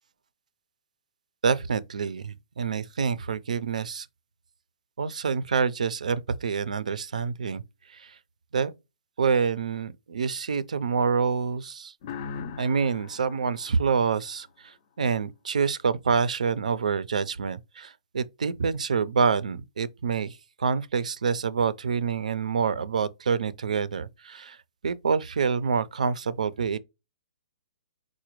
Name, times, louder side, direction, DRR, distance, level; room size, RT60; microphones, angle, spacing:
voice 1, 1.4-4.1 5.0-7.6 7.9-8.2 8.5-8.7 9.2-11.9 12.6-24.6 24.8-26.8, right 5 dB, 85° right, 0.4 m, -27 dB
sound 1, 12.0-14.7, left 6 dB, 40° left, 0.4 m, -40 dB
4.9 x 2.1 x 3.0 m
hypercardioid pair, 150°, 4 cm